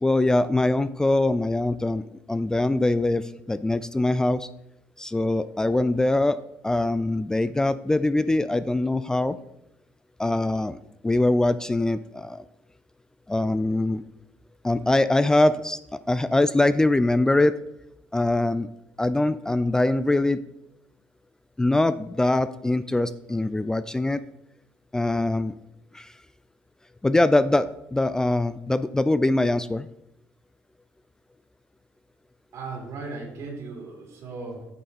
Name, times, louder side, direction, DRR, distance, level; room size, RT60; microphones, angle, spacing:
voice 1, 0.0-4.5 5.0-6.4 6.6-9.4 10.2-12.4 13.3-14.0 14.6-17.6 18.1-18.7 19.0-20.4 21.6-24.2 24.9-25.5 25.9-26.1 27.0-29.9, left 2 dB, 10° left, 14 dB, 0.3 m, -23 dB
voice 2, 32.5-34.7, right 3 dB, 65° right, 0 dB, 3.1 m, -37 dB
9.0 x 6.4 x 4.2 m, 0.82 s
cardioid pair, 90°, 5 cm